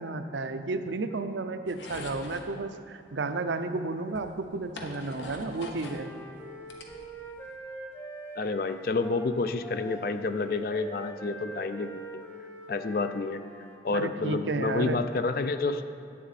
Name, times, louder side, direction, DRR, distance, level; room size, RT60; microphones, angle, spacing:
voice 1, 0.0-6.1 13.9-15.0, right 3 dB, 80° right, 8 dB, 0.6 m, -32 dB
sound 1, 1.7-2.5 3.6-3.7 4.1-6.0 6.4-7.5, left 2 dB, 80° left, 1.1 m, -43 dB
Wind instrument woodwind instrument, 5.3-13.8, right 2 dB, 10° left, 0.9 m, -44 dB
voice 2, 8.4-12.0 12.7-13.4 13.8-15.8, left 3 dB, 50° left, 9 dB, 0.4 m, -29 dB
11.0 x 8.7 x 4.2 m, 2.5 s
head